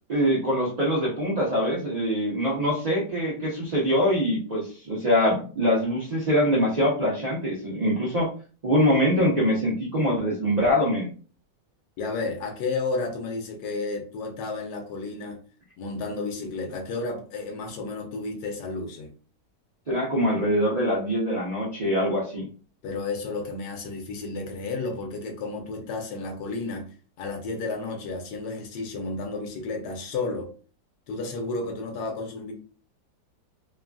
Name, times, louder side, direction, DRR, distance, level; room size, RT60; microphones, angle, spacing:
voice 1, 0.1-8.3 8.6-11.1 19.9-22.5, equal, 85° right, 0.3 m, -24 dB
voice 2, 12.0-15.4 15.8-19.1 22.8-26.9 27.2-30.5 31.1-32.5, left 3 dB, 70° left, 1.2 m, -32 dB
3.1 x 2.4 x 2.2 m
omnidirectional pair, 1.9 m